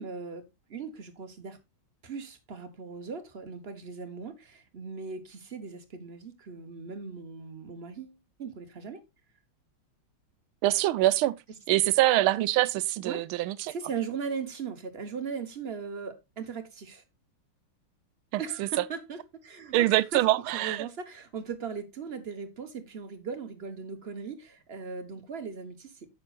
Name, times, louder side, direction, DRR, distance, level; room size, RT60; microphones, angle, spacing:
voice 1, 0.0-1.6 2.0-9.0 13.0-13.3 13.7-17.0 18.4-26.1, right 5 dB, 40° right, 1.1 m, -39 dB
voice 2, 10.6-11.3 11.7-13.7 18.3-18.7 19.7-20.8, right 15 dB, 85° right, 1.4 m, -24 dB
9.7 x 7.4 x 2.4 m
omnidirectional pair, 2.3 m